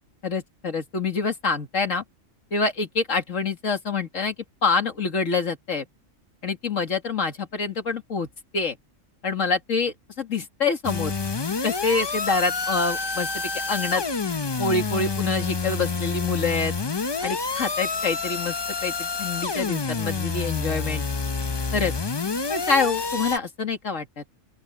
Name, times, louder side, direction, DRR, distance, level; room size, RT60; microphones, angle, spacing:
voice 1, 0.2-2.0 2.5-4.3 4.6-5.9 6.4-8.3 8.5-8.8 9.2-11.1 11.6-14.0 14.6-16.7 17.2-18.6 18.8-21.0 21.7-21.9 22.5-24.2, left 4 dB, 70° left, 2.6 m, -26 dB
sound 1, 10.8-23.4, left 4 dB, 30° left, 0.5 m, -28 dB
open air
omnidirectional pair, 1.4 m